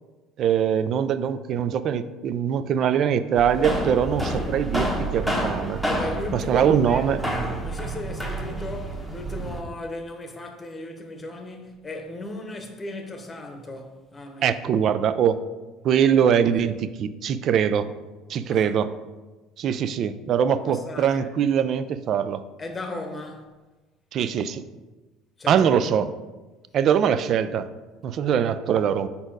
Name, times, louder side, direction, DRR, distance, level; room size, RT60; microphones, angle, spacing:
voice 1, 0.4-5.8 6.3-7.2 14.4-15.4 15.8-17.9 18.3-18.9 19.6-22.4 24.1-24.6 25.5-26.1 26.7-27.7 28.0-29.1, right 8 dB, 50° right, 0.4 m, -22 dB
sound 1, 3.4-9.6, right 1 dB, 5° right, 1.0 m, -29 dB
voice 2, 5.8-7.0 7.6-14.6 18.5-18.7 20.6-21.3 22.6-23.5 25.4-25.8, left 2 dB, 20° left, 0.9 m, -36 dB
5.3 x 4.3 x 4.6 m
cardioid pair, 115°, 0 cm